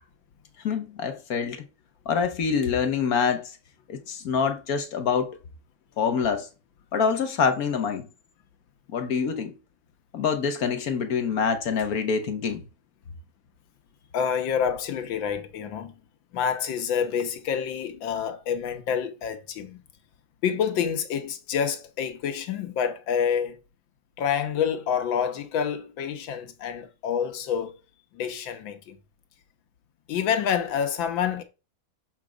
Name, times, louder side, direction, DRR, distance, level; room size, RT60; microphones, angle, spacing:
voice 1, 0.6-1.6 2.1-3.6 3.9-5.4 6.0-6.5 6.9-8.1 8.9-9.5 10.1-12.6, left 6 dB, 55° left, 1.3 m, -26 dB
voice 2, 14.1-15.9 16.3-19.8 20.4-23.6 24.2-27.8 28.1-29.0 30.1-31.4, left 7 dB, 80° left, 1.8 m, -27 dB
7.4 x 3.4 x 5.0 m
omnidirectional pair, 2.1 m